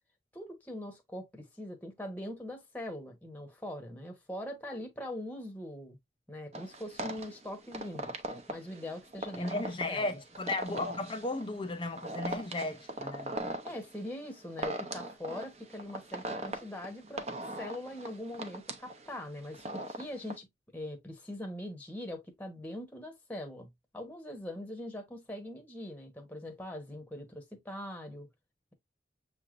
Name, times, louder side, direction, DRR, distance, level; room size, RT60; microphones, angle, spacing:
voice 1, 0.3-6.0 6.3-8.1 8.5-10.2 13.6-20.5 20.7-23.7 23.9-28.3, left 1 dB, 10° left, 0.9 m, -42 dB
sound 1, 6.5-20.4, right 1 dB, 35° right, 0.7 m, -40 dB
voice 2, 9.3-13.4, left 2 dB, 25° left, 0.5 m, -35 dB
6.8 x 3.2 x 2.4 m
head